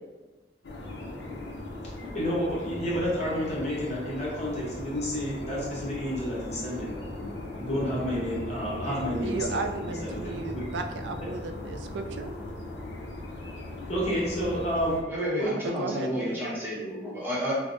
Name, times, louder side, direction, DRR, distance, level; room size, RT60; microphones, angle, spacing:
sound 1, 0.6-15.0, left 2 dB, 70° left, 0.6 m, -38 dB
voice 1, 2.1-7.0 7.6-9.6 10.0-10.6 13.9-15.0 15.4-15.6, equal, 40° left, -6 dB, 1.0 m, -30 dB
voice 2, 9.2-12.3 15.6-16.4, right 3 dB, 80° right, 6 dB, 0.3 m, -35 dB
voice 3, 15.1-17.6, equal, 10° right, -7 dB, 0.8 m, -30 dB
4.9 x 2.0 x 2.5 m, 1.2 s
head